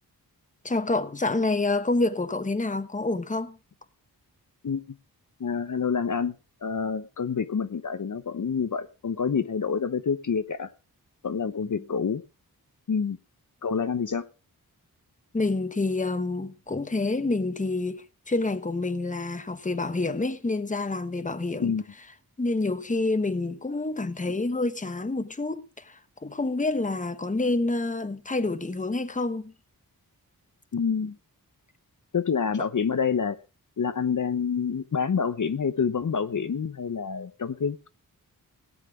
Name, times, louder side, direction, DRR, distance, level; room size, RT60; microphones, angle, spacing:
voice 1, 0.6-3.6 11.6-11.8 15.3-21.7 22.4-29.5, left 2 dB, 20° left, 1.1 m, -28 dB
voice 2, 4.6-5.0 5.4-6.3 6.6-10.7 11.2-12.2 12.9-13.2 13.6-14.3 21.6-21.8 30.7-31.1 32.1-33.4 33.8-37.9, left 6 dB, 55° left, 0.9 m, -27 dB
17.5 x 9.1 x 4.8 m
wide cardioid pair, 95°, 38 cm